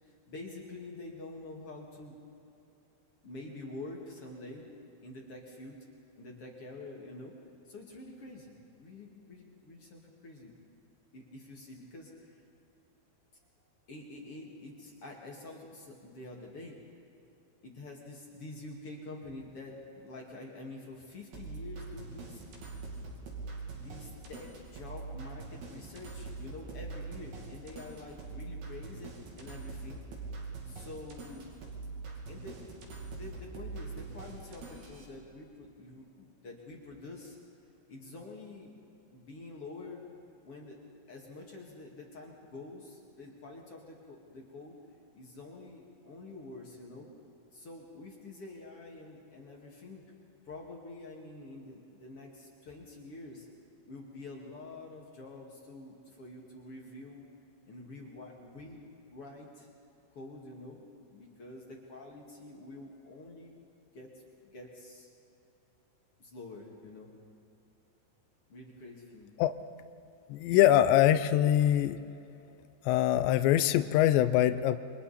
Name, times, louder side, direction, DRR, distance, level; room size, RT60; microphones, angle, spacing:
voice 1, 0.0-2.2 3.2-4.6 5.0-5.8 6.2-7.3 7.7-10.5 11.1-12.4 13.9-16.8 17.6-22.4 23.7-30.0 30.7-31.6 32.3-32.7 33.0-37.4 37.9-38.8 39.1-40.2 40.4-40.8 41.1-44.8 45.1-47.1 47.5-50.0 50.4-53.5 53.9-57.3 57.7-58.8 59.1-59.7 60.1-63.6 63.9-64.1 64.5-65.1 66.2-67.1 68.5-69.3, left 2 dB, 40° left, -1 dB, 2.3 m, -47 dB
sound 1, 21.3-35.1, right 3 dB, 60° right, 4.3 m, -43 dB
voice 2, 70.3-72.0 72.9-74.8, left 12 dB, 80° left, 11 dB, 2.8 m, -23 dB
29.0 x 24.0 x 4.3 m, 2.8 s
omnidirectional pair, 5.2 m